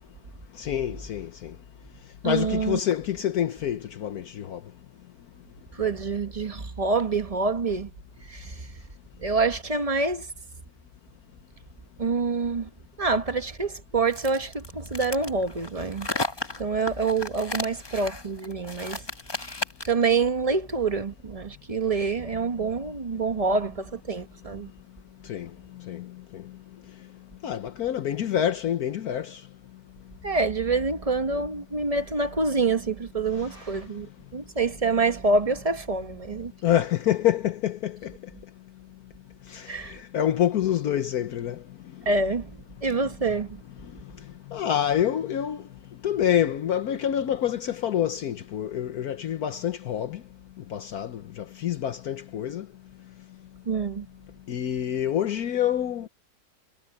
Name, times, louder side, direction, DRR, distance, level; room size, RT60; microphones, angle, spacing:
voice 1, 0.6-1.5 2.2-4.6 25.3-25.5 25.8-26.4 27.4-29.4 36.6-38.1 39.5-41.6 44.5-45.6 46.0-50.2 50.7-52.7 54.5-56.1, left 10 dB, 70° left, 1.3 m, -27 dB
voice 2, 2.2-2.8 5.7-7.9 8.2-8.7 9.2-10.3 12.0-12.7 13.0-16.1 16.6-19.0 19.9-24.7 30.2-34.1 34.3-36.5 39.7-40.0 42.0-42.5 42.8-43.6 53.7-54.1, right 4 dB, 25° right, 0.9 m, -26 dB
sound 1, 14.1-20.0, left 2 dB, 15° left, 1.1 m, -34 dB
omnidirectional pair, 1.8 m